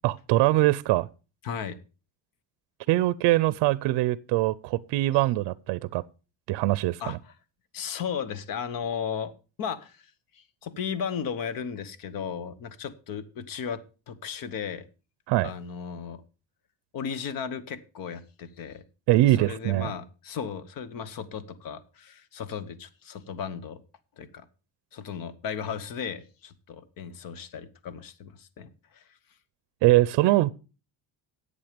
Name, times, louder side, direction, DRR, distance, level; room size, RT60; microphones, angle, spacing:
voice 1, 0.0-1.1 2.9-6.0 6.5-7.2 15.3-15.5 19.1-19.9 29.8-30.5, right 17 dB, 75° right, 0.6 m, -22 dB
voice 2, 1.4-1.8 7.0-7.3 7.7-9.3 9.6-10.0 10.3-13.8 14.1-14.8 15.4-16.2 16.9-18.8 19.4-23.8 24.2-24.4 24.9-29.0, left 7 dB, 50° left, 1.1 m, -35 dB
11.0 x 8.1 x 5.1 m
cardioid pair, 175°, 42 cm